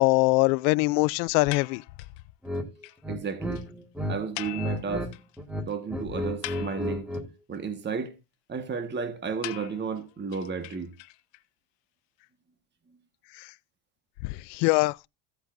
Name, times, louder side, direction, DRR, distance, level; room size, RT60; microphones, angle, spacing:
voice 1, 0.0-1.8 14.2-15.0, left 24 dB, 80° left, 0.6 m, -22 dB
sound 1, 1.5-2.2 2.6-2.7 2.8-3.0 3.2-3.3 3.5-3.6 4.4-5.4 5.7-5.8 6.2-7.2 9.4-11.4, left 18 dB, 60° left, 1.0 m, -41 dB
sound 2, 2.4-2.7 3.0-4.2 4.4-5.1 5.4-7.3, equal, ahead, 1.9 m, -32 dB
voice 2, 3.1-3.6 4.1-5.1 5.7-7.1 7.5-8.1 8.5-10.9, right 5 dB, 20° right, 1.5 m, -33 dB
15.5 x 8.2 x 2.6 m
cardioid pair, 120°, 49 cm